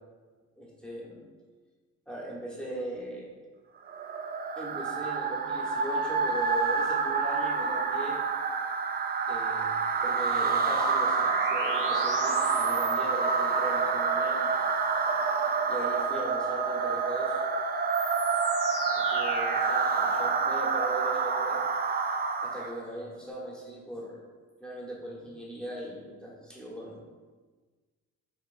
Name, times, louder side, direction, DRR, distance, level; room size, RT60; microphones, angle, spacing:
voice 1, 0.6-1.2 2.1-3.3 4.6-8.2 9.3-9.7 10.0-14.4 15.7-17.4 19.0-21.6 22.4-24.2 24.6-27.1, right 1 dB, 5° left, -5 dB, 1.3 m, -39 dB
sound 1, 3.9-22.8, right 5 dB, 35° right, 0.4 m, -28 dB
sound 2, 10.5-20.4, left 3 dB, 85° left, 1.0 m, -38 dB
5.6 x 3.4 x 2.6 m, 1.4 s
cardioid pair, 90°, 30 cm